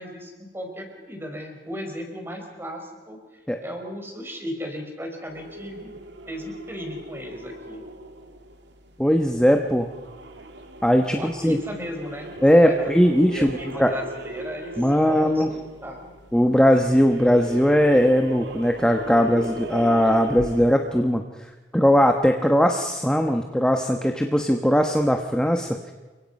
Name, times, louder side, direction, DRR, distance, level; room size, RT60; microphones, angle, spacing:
voice 1, 0.0-6.0 6.3-7.8 11.1-16.1, equal, 15° right, 3 dB, 4.6 m, -36 dB
sound 1, 5.3-21.0, right 1 dB, 80° right, 2.3 m, -39 dB
voice 2, 9.0-9.9 10.8-11.6 12.4-13.9 14.8-15.5 16.3-21.2 21.7-25.9, equal, 5° left, 4 dB, 1.1 m, -19 dB
29.0 x 23.5 x 5.4 m, 1.3 s
head